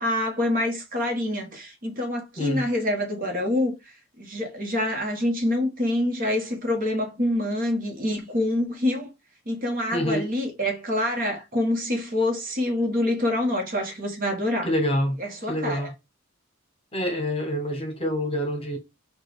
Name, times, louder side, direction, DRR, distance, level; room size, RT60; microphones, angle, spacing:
voice 1, 0.0-3.7 4.2-9.1 9.5-14.7 15.2-15.9, left 1 dB, 40° right, 1.2 m, -26 dB
voice 2, 9.9-10.3 14.6-15.2 15.5-15.9 16.9-18.8, equal, 30° left, 1.0 m, -26 dB
4.5 x 2.4 x 4.6 m
head